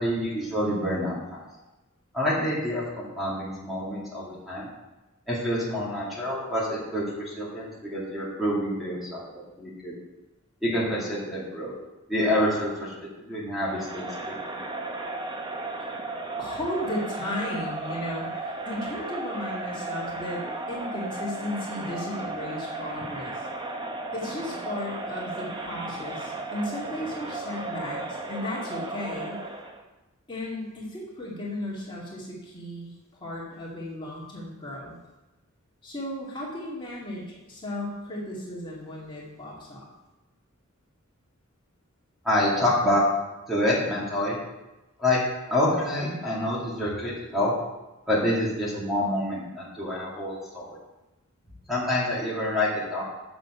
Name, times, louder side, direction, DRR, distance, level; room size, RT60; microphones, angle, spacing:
voice 1, 0.0-1.5 2.1-4.7 5.3-9.9 10.6-11.8 12.1-12.9 13.3-14.1 14.5-14.6 42.2-43.0 43.5-44.4 45.0-45.2 45.5-47.5 48.1-50.7 51.7-53.0, left 1 dB, ahead, -7 dB, 2.3 m, -27 dB
Crowd, 13.7-29.8, right 2 dB, 20° right, 0.8 m, -35 dB
voice 2, 16.4-23.5 24.1-29.4 30.3-32.9 33.2-35.0 35.8-39.8, left 1 dB, 25° left, -6 dB, 2.3 m, -35 dB
7.4 x 7.1 x 5.7 m, 1.0 s
head